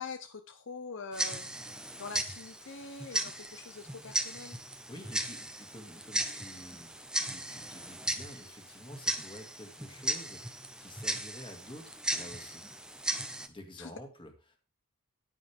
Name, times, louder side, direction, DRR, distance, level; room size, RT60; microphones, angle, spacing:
voice 1, 0.0-1.5 2.0-4.6 13.8-13.9, left 4 dB, 55° left, 8 dB, 0.8 m, -44 dB
Tick-tock, 1.1-13.5, right 1 dB, 5° right, 0.8 m, -37 dB
voice 2, 4.9-6.9 7.2-12.7 13.5-14.6, left 1 dB, 25° left, 4 dB, 2.1 m, -49 dB
9.7 x 9.4 x 3.5 m, 0.33 s
head